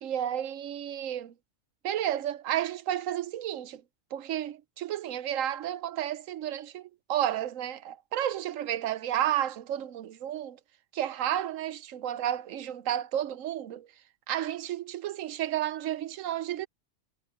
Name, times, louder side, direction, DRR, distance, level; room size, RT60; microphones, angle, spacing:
voice 1, 0.0-1.3 1.8-3.8 4.1-10.6 10.9-13.9 14.3-16.7, right 11 dB, 90° right, 1.1 m, -32 dB
omnidirectional pair, 1.3 m